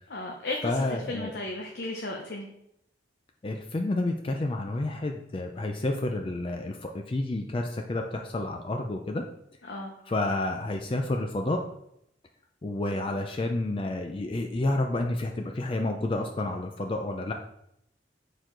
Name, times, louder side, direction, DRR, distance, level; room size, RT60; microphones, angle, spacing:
voice 1, 0.1-2.5 9.7-9.9, left 2 dB, 70° left, 1 dB, 0.8 m, -35 dB
voice 2, 0.6-1.3 3.4-9.2 10.1-11.6 12.6-17.3, left 2 dB, 30° left, 3 dB, 0.4 m, -30 dB
6.7 x 4.5 x 3.8 m, 0.77 s
head